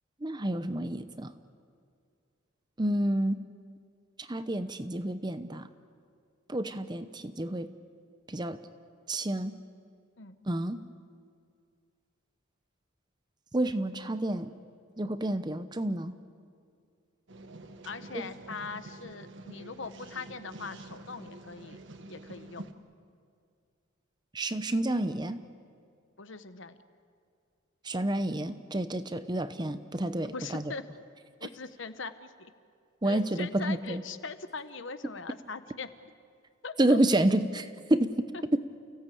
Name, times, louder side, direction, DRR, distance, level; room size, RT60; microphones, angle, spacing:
voice 1, 0.2-1.3 2.8-3.4 4.2-5.7 6.5-7.7 8.3-8.6 9.1-9.6 10.5-10.8 13.5-14.6 15.0-16.1 18.1-18.3 24.3-25.4 27.8-30.6 33.0-34.0 36.8-37.5 37.9-38.3 38.5-38.6, right 1 dB, 20° right, 11 dB, 0.7 m, -29 dB
sound 1, 17.3-22.7, right 2 dB, 55° right, 1.3 m, -47 dB
voice 2, 17.8-21.8 22.1-22.6 26.2-26.8 30.0-30.9 31.4-32.5 33.0-35.9 36.6-37.0 38.3-38.4, left 4 dB, 60° left, 11 dB, 1.1 m, -41 dB
29.5 x 17.0 x 8.5 m, 2.3 s
head